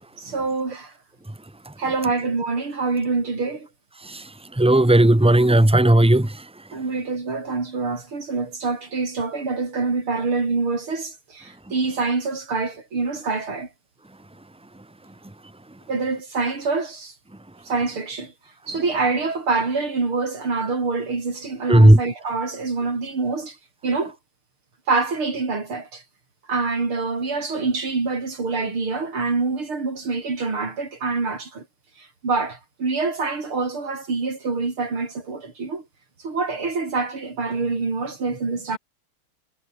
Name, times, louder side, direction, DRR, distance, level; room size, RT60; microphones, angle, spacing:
voice 1, 0.2-0.9 1.8-3.7 6.7-13.7 15.9-17.1 17.7-18.3 18.7-23.5 23.8-24.2 24.9-26.0 26.5-31.6 32.2-35.8 36.2-38.8, right 4 dB, 75° right, 5.7 m, -25 dB
voice 2, 4.6-6.3 21.7-22.0, right 1 dB, 10° right, 0.4 m, -14 dB
omnidirectional pair, 2.3 m